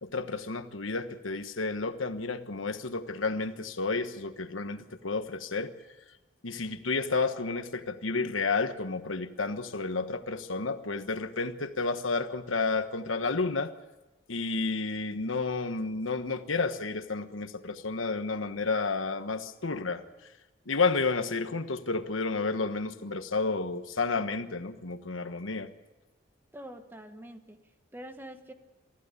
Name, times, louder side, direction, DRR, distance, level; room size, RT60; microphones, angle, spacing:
voice 1, 0.0-5.7 6.4-13.7 14.3-20.0 20.7-25.7, left 3 dB, 85° left, 10 dB, 1.3 m, -31 dB
voice 2, 26.5-28.5, equal, 10° right, 7 dB, 1.3 m, -46 dB
24.0 x 15.0 x 8.3 m, 1.1 s
head